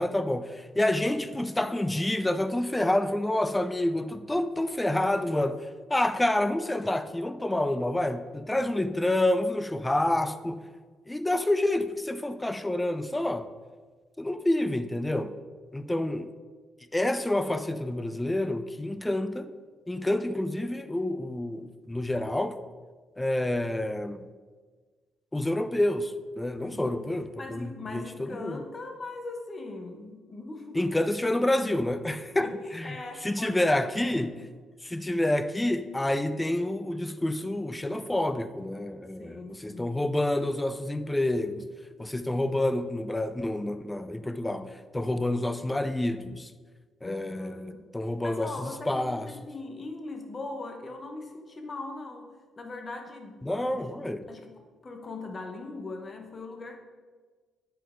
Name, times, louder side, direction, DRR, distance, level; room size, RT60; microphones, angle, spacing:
voice 1, 0.0-10.6 11.1-13.5 14.2-15.3 15.7-16.3 16.9-19.5 19.9-22.6 23.2-24.3 25.3-28.6 30.7-34.4 34.8-41.7 42.0-46.5 47.0-49.3 53.4-54.3, left 1 dB, 10° left, 0.4 m, -28 dB
voice 2, 26.6-27.1 27.4-30.8 32.4-33.6 34.4-34.5 39.2-39.9 47.0-47.8 48.2-53.9 54.3-56.8, left 3 dB, 35° left, 1.0 m, -40 dB
9.1 x 4.6 x 3.7 m
cardioid pair, 90°, 0 cm